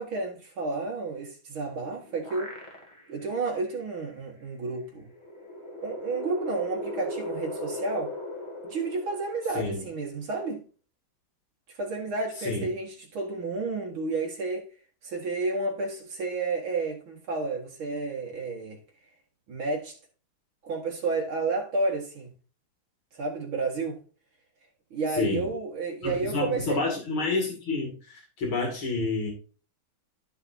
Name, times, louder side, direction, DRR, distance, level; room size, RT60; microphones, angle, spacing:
voice 1, 0.0-2.5 3.1-5.1 5.8-8.1 8.6-10.6 11.7-14.7 15.0-18.8 19.5-20.0 20.6-22.3 23.1-24.0 24.9-26.8, right 3 dB, 75° right, 2.7 m, -31 dB
sound 1, 1.7-3.2 3.7-3.8 5.0-9.8, left 1 dB, 15° left, 2.6 m, -38 dB
voice 2, 25.1-25.5 26.0-29.3, left 3 dB, 70° left, 3.2 m, -29 dB
14.5 x 5.6 x 2.7 m
omnidirectional pair, 2.3 m